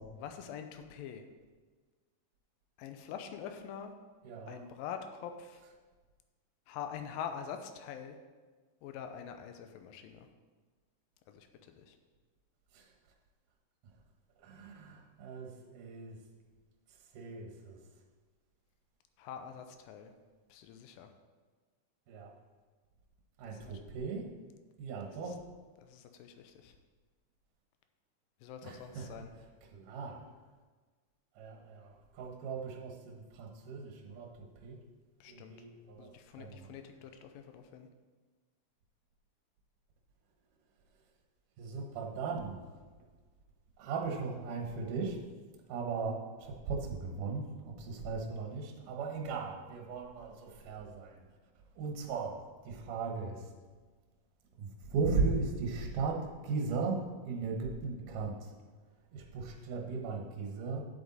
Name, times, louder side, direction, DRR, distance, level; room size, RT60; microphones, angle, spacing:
voice 1, 0.1-1.2 2.8-3.9 4.5-5.6 6.7-8.2 8.8-10.3 11.3-12.0 19.2-20.1 20.5-21.1 23.5-23.8 25.3-25.4 25.8-26.7 28.4-29.3 35.2-35.6 36.0-37.9, left 8 dB, 85° left, 7 dB, 2.4 m, -45 dB
voice 2, 4.2-4.6 12.7-12.9 14.4-16.2 17.1-17.8 22.1-22.3 23.4-24.3 24.8-25.4 28.6-29.1 29.7-30.2 31.4-34.8 35.3-36.5 41.6-42.6 43.8-45.2 45.7-51.2 51.8-52.4 52.6-53.5 54.6-58.5 59.1-60.8, right 4 dB, 70° right, 1 dB, 2.6 m, -37 dB
10.0 x 8.0 x 4.1 m, 1.4 s
omnidirectional pair, 4.0 m